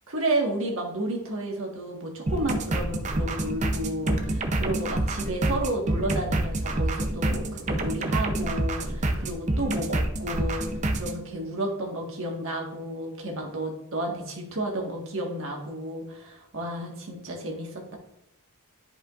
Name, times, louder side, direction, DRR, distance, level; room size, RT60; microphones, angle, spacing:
voice 1, 0.1-10.7 10.9-17.9, right 1 dB, 65° right, 0 dB, 1.5 m, -31 dB
sound 1, 2.3-11.2, right 1 dB, 30° right, 0.6 m, -27 dB
10.5 x 4.9 x 2.5 m, 0.80 s
head